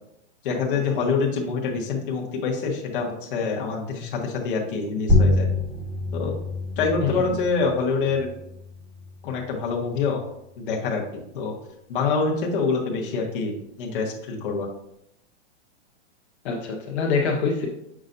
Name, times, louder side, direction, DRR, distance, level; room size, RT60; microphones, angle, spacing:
voice 1, 0.4-5.5 6.1-6.4 6.8-8.3 9.2-10.2 10.6-11.0 11.3-11.5 11.9-14.7, left 4 dB, 50° left, -1 dB, 1.4 m, -26 dB
sound 1, 5.1-10.2, left 2 dB, ahead, 0.8 m, -26 dB
voice 2, 7.0-7.3 16.4-17.7, left 5 dB, 70° left, 0 dB, 1.3 m, -25 dB
6.4 x 6.2 x 2.6 m, 0.80 s
supercardioid pair, 160°, 34 cm